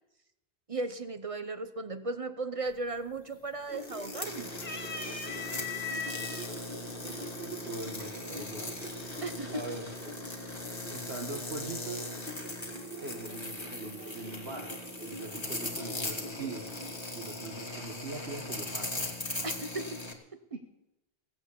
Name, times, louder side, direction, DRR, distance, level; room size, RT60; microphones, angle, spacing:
voice 1, 0.7-4.5 9.2-9.6 19.4-20.0 20.3-20.4, right 2 dB, 35° right, 10 dB, 0.8 m, -36 dB
sound 1, 2.7-3.1 3.4-4.1 4.5-6.5 7.3-7.4 8.7-9.1, left 5 dB, 45° left, 1.5 m, -38 dB
sound 2, 3.7-20.1, left 2 dB, 25° left, 1.8 m, -39 dB
sound 3, 3.7-17.0, right 1 dB, 55° right, 2.0 m, -45 dB
voice 2, 6.3-8.8 9.5-9.9 10.9-12.1 13.0-14.7 15.0-16.7 17.1-18.9 20.5-20.6, right 3 dB, 75° right, 2 dB, 1.6 m, -42 dB
17.0 x 7.6 x 8.3 m, 0.91 s
omnidirectional pair, 1.1 m